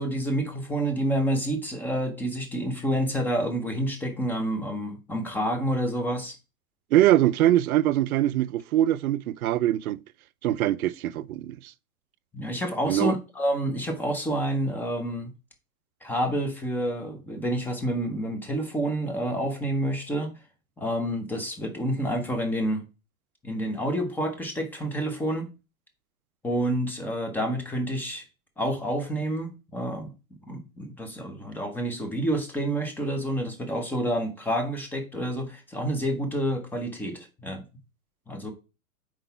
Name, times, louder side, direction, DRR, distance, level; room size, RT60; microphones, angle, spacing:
voice 1, 0.0-6.3 12.3-15.3 16.0-20.3 20.8-22.8 23.4-25.5 26.4-28.2 28.6-30.1 30.5-37.6 38.3-38.5, right 1 dB, 5° left, 0.7 m, -28 dB
voice 2, 6.9-10.0 10.4-11.7 12.9-13.1, right 13 dB, 75° right, 0.5 m, -23 dB
4.7 x 3.9 x 5.6 m
hypercardioid pair, 135°, 44 cm